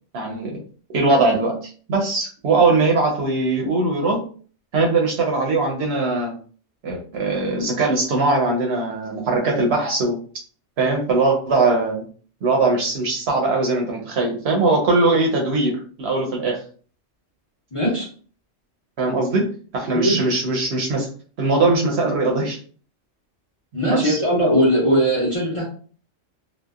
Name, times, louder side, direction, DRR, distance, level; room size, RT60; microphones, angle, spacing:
voice 1, 0.1-0.6 0.9-4.2 4.7-6.3 6.8-10.2 10.8-12.0 12.4-16.6 19.0-19.5 19.7-21.1 21.4-22.6 23.8-24.2, right 3 dB, 65° right, 0 dB, 0.8 m, -20 dB
voice 2, 17.7-18.1 19.9-20.2 23.7-25.6, equal, 30° left, -5 dB, 0.7 m, -19 dB
2.7 x 2.0 x 2.3 m, 0.42 s
omnidirectional pair, 1.3 m